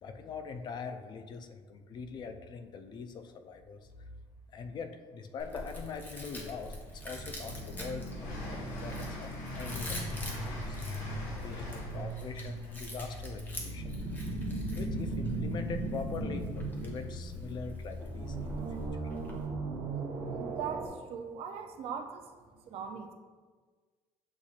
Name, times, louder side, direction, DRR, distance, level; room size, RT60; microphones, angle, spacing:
voice 1, 0.0-4.1 4.5-8.1 8.5-10.8 11.4-19.1, left 5 dB, 40° left, 7 dB, 0.4 m, -42 dB
Chewing mastication, 5.4-19.5, left 1 dB, 15° left, 0.8 m, -45 dB
Train, 6.1-6.2 6.6-14.3, left 1 dB, 80° left, 1.4 m, -47 dB
sound 1, 6.9-20.9, right 2 dB, 75° right, 0.9 m, -38 dB
voice 2, 20.4-23.1, right 7 dB, 60° right, 6 dB, 0.5 m, -40 dB
7.9 x 2.7 x 2.4 m, 1.4 s
cardioid pair, 135°, 11 cm